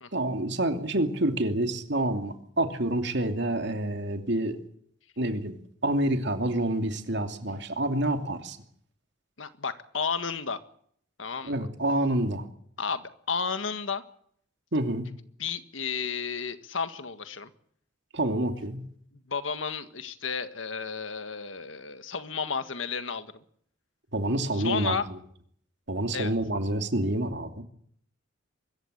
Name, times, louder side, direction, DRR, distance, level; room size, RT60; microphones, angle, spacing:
voice 1, 0.1-4.6 5.2-5.6 5.8-8.6 11.4-12.4 14.7-15.1 18.1-18.8 24.1-25.0 25.9-27.6, right 1 dB, 65° right, 6 dB, 2.7 m, -28 dB
voice 2, 9.4-10.6 11.2-11.5 12.8-14.0 15.4-17.5 19.3-23.4 24.5-25.1 26.1-26.3, left 5 dB, 85° left, 10 dB, 1.7 m, -32 dB
24.0 x 14.5 x 9.9 m, 0.66 s
head